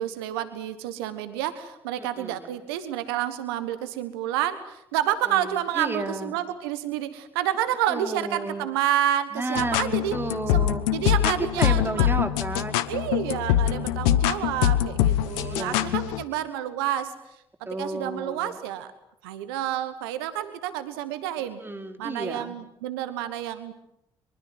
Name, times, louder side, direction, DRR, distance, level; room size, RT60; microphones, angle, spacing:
voice 1, 0.0-10.2 10.5-12.1 12.9-17.1 17.6-18.9 19.2-21.6 22.0-23.7, right 12 dB, 80° right, 12 dB, 1.3 m, -29 dB
voice 2, 2.0-2.6 5.3-6.4 7.9-8.7 9.3-10.8 11.2-12.9 13.6-14.2 15.3-16.0 17.7-18.5 21.4-22.6, right 2 dB, 15° right, 6 dB, 3.4 m, -33 dB
sound 1, 9.5-16.2, left 12 dB, 75° left, 1.1 m, -24 dB
24.0 x 23.5 x 7.8 m, 0.79 s
hypercardioid pair, 45°, 13 cm